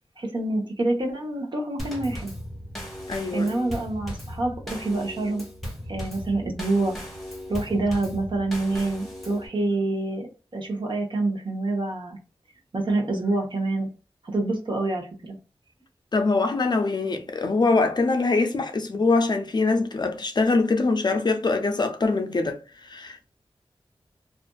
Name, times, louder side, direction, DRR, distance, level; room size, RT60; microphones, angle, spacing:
voice 1, 0.2-2.3 3.3-5.4 5.9-7.0 7.5-10.3 10.5-12.2 12.7-13.9 14.2-15.4, right 2 dB, 55° right, 0.9 m, -26 dB
Drum kit / Snare drum / Bass drum, 1.8-9.5, equal, ahead, 1.0 m, -37 dB
voice 2, 3.1-3.5 16.1-23.3, left 3 dB, 45° left, 0.4 m, -23 dB
2.5 x 2.4 x 2.2 m
wide cardioid pair, 90°, 10 cm